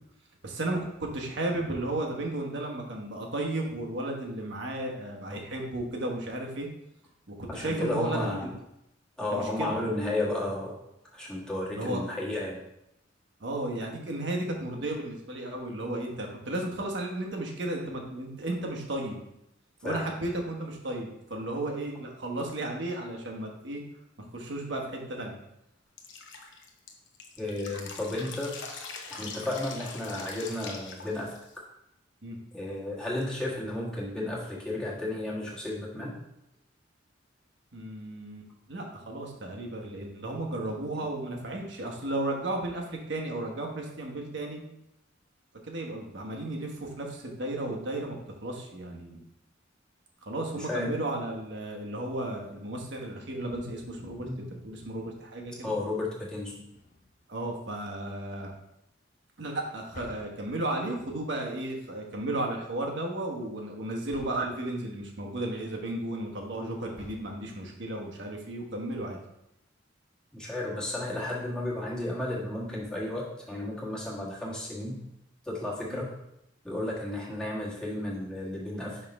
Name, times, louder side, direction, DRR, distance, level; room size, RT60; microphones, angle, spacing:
voice 1, 0.4-6.7 7.3-8.5 9.3-9.7 11.7-12.0 13.4-19.2 19.8-23.8 24.2-25.4 32.2-32.4 37.7-44.6 45.7-49.2 50.2-55.7 57.3-58.5 59.4-69.2 75.9-76.0, right 1 dB, 65° right, 0 dB, 1.2 m, -34 dB
voice 2, 7.5-8.6 9.2-10.8 11.1-12.6 19.8-20.0 27.4-28.5 29.1-31.3 32.5-36.2 40.9-41.1 50.5-50.9 53.4-53.5 54.2-54.5 55.6-56.5 70.3-75.0 75.4-76.1 76.6-79.0, left 1 dB, 5° left, -6 dB, 1.5 m, -33 dB
Drip, 26.0-31.6, left 4 dB, 70° left, 0.8 m, -43 dB
sound 1, 56.7-57.4 59.9-60.8 64.1-64.7 66.9-67.8, left 2 dB, 40° left, 0.6 m, -50 dB
5.6 x 3.7 x 5.2 m, 0.82 s
head